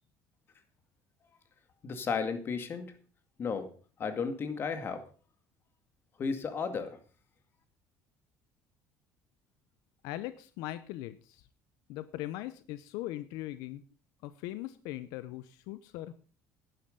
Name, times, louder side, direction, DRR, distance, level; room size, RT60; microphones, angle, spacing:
voice 1, 1.8-2.9 3.4-3.7 4.0-5.0 6.2-7.0, left 5 dB, 35° left, 9 dB, 2.1 m, -33 dB
voice 2, 10.0-11.4 11.9-13.8 14.2-16.1, left 15 dB, 85° left, 14 dB, 0.7 m, -40 dB
12.0 x 10.0 x 5.3 m, 0.39 s
cardioid pair, 125°, 6 cm